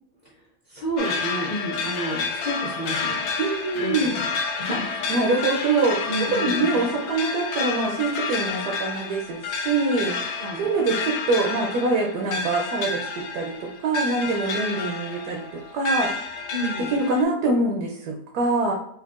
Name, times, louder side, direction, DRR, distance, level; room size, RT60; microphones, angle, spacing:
voice 1, 0.7-3.2 3.7-4.8 6.1-6.9 10.4-10.6 16.5-16.9, right 1 dB, 35° left, -6 dB, 0.8 m, -31 dB
sound 1, 1.0-17.2, left 4 dB, 75° left, 0.6 m, -30 dB
voice 2, 3.4-4.2 4.7-16.1 16.9-18.7, right 3 dB, 80° right, 0 dB, 1.1 m, -25 dB
4.5 x 2.7 x 2.4 m, 0.73 s
omnidirectional pair, 1.7 m